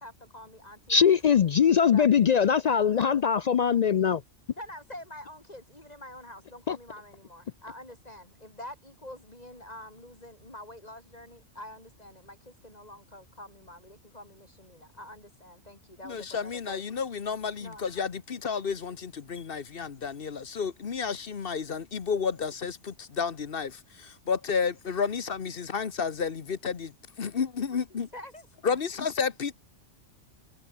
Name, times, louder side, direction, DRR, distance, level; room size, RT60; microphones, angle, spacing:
voice 1, 0.0-1.2 1.9-2.1 4.5-16.8 17.6-17.8 28.1-28.8, left 1 dB, 30° left, 7.8 m, -46 dB
voice 2, 0.9-4.2 6.7-6.8, left 7 dB, 75° left, 0.3 m, -22 dB
voice 3, 16.0-28.1 28.6-29.5, left 6 dB, 50° left, 1.2 m, -31 dB
omnidirectional pair, 1.3 m